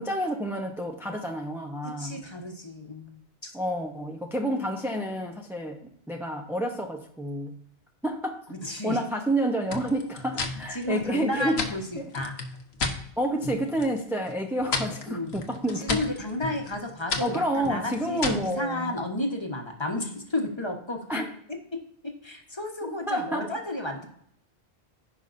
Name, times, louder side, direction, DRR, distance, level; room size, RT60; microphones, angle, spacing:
voice 1, 0.0-2.2 3.5-7.5 8.0-8.4 8.8-11.6 12.0-12.1 13.2-16.0 16.4-16.5 17.2-19.0 21.1-21.3 22.8-23.5, right 1 dB, ahead, 2 dB, 0.7 m, -29 dB
voice 2, 1.8-3.5 8.5-9.0 10.7-12.3 15.1-15.3 15.7-24.1, left 1 dB, 25° left, 2 dB, 1.2 m, -32 dB
sound 1, 9.7-13.0 13.4-14.0 14.3-18.5, left 3 dB, 70° left, 1.3 m, -33 dB
15.0 x 5.5 x 2.6 m, 0.70 s
omnidirectional pair, 1.1 m